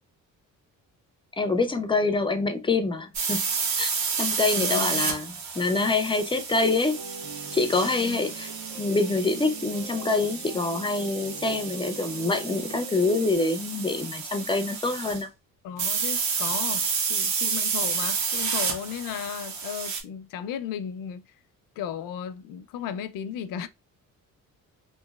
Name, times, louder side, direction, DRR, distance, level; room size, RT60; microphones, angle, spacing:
voice 1, 1.4-3.4 3.8-3.9 4.2-7.0 7.5-8.5 8.8-15.3, left 3 dB, 15° left, 0.3 m, -26 dB
sound 1, 3.1-15.2 15.8-20.0, right 5 dB, 60° right, 0.8 m, -30 dB
voice 2, 4.5-5.2 7.9-8.2 15.6-21.2 21.8-23.7, left 8 dB, 75° left, 0.5 m, -35 dB
sound 2, 6.9-13.3, right 5 dB, 80° right, 1.3 m, -43 dB
3.0 x 2.5 x 2.3 m
cardioid pair, 120°, 33 cm